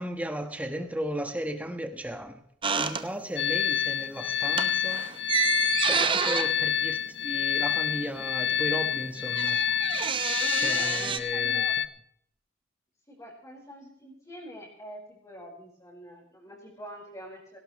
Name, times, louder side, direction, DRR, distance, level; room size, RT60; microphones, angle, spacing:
voice 1, 0.0-2.4 2.7-5.0 5.8-9.6 10.5-11.6, equal, 10° right, 6 dB, 1.5 m, -35 dB
sound 1, 2.6-3.6 3.9-4.1 4.4-7.9 8.2-8.3 8.5-11.2, right 5 dB, 25° right, 0.8 m, -29 dB
sound 2, 3.4-11.9, left 9 dB, 60° left, 0.6 m, -28 dB
voice 2, 10.7-11.7 13.1-17.6, equal, 20° left, -5 dB, 4.9 m, -46 dB
18.0 x 17.0 x 3.2 m, 0.68 s
head